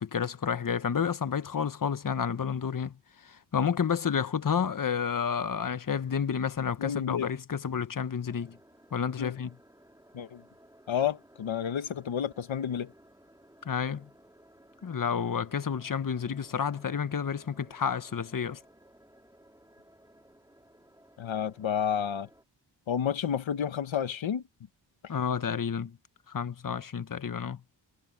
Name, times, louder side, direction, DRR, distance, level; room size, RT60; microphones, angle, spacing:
voice 1, 0.0-2.9 3.2-8.6 8.9-9.5 13.6-14.1 14.8-18.6 25.1-25.9 26.3-27.6, left 7 dB, 45° left, 1.2 m, -30 dB
voice 2, 6.8-7.3 9.2-9.3 10.1-10.4 10.9-12.9 21.2-22.3 22.9-24.4, left 8 dB, 85° left, 1.4 m, -30 dB
sound 1, 8.2-22.4, right 1 dB, 5° right, 6.2 m, -59 dB
cardioid pair, 70°, 46 cm